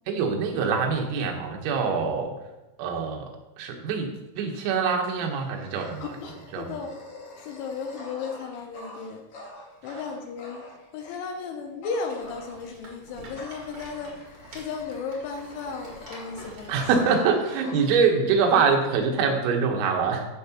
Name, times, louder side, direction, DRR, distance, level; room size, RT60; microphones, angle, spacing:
voice 1, 0.1-2.3 2.8-3.3 3.6-6.2 6.5-6.8 9.8-10.0 16.7-20.3, right 5 dB, 90° right, 2 dB, 3.9 m, -24 dB
Dog, 5.0-11.2 11.8-12.9 13.4-16.5 16.8-18.0, left 1 dB, 55° left, 2.9 m, -46 dB
voice 2, 6.0-6.9 7.4-9.2 9.8-16.8, left 5 dB, 80° left, 4 dB, 3.0 m, -35 dB
Rattle, 12.1-17.2, right 1 dB, 50° right, 1.6 m, -47 dB
14.5 x 6.6 x 2.9 m, 1.0 s
omnidirectional pair, 5.9 m